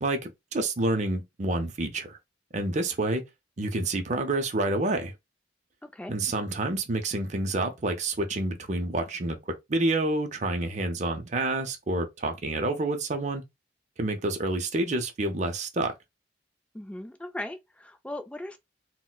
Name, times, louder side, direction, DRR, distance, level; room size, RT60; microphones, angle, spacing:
voice 1, 0.0-2.2 2.5-3.2 3.6-5.1 6.1-9.4 9.7-13.4 14.0-15.9, right 2 dB, 40° right, 0.6 m, -28 dB
voice 2, 5.8-6.1 16.7-18.6, left 1 dB, 5° left, 0.4 m, -38 dB
4.0 x 2.1 x 2.3 m
head